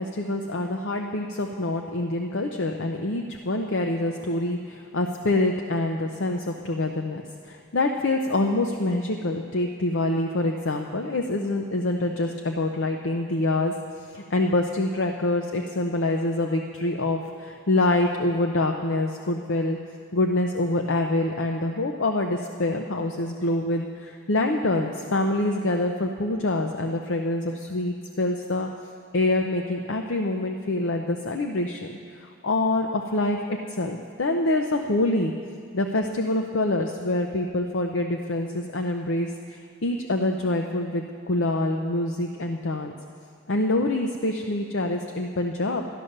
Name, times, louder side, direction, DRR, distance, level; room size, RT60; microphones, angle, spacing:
voice 1, 0.0-19.8 20.1-28.7 29.1-35.3 35.7-42.9 43.5-45.8, left 2 dB, 60° left, 3 dB, 0.6 m, -26 dB
13.5 x 10.0 x 6.5 m, 2.3 s
head